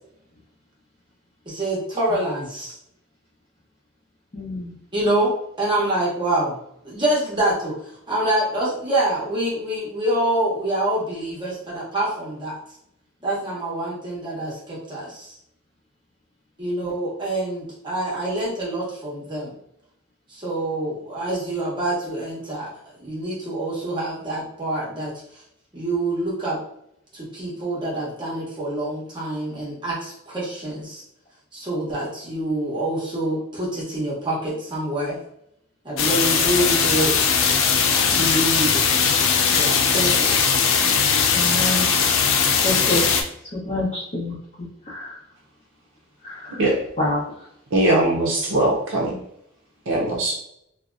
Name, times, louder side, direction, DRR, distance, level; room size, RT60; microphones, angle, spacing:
voice 1, 1.5-2.8 4.9-5.3 5.6-6.6 6.8-7.7 8.1-12.5 13.2-15.3 16.6-19.5 20.3-22.7 23.0-25.1 25.7-26.6 27.1-31.0 31.5-35.2 35.8-37.1 38.1-38.8 39.5-40.4, right 1 dB, 25° right, -6 dB, 0.7 m, -26 dB
voice 2, 4.3-4.8 16.8-17.0 40.8-40.9 41.3-41.9 42.6-43.0 43.5-45.2 46.2-46.6 47.0-47.5, left 1 dB, 35° left, -8 dB, 0.7 m, -28 dB
sound 1, 36.0-43.2, left 6 dB, 65° left, 0.4 m, -19 dB
voice 3, 47.7-49.2 49.9-50.3, right 1 dB, 65° right, -3 dB, 0.5 m, -20 dB
2.6 x 2.1 x 2.3 m, 0.74 s
head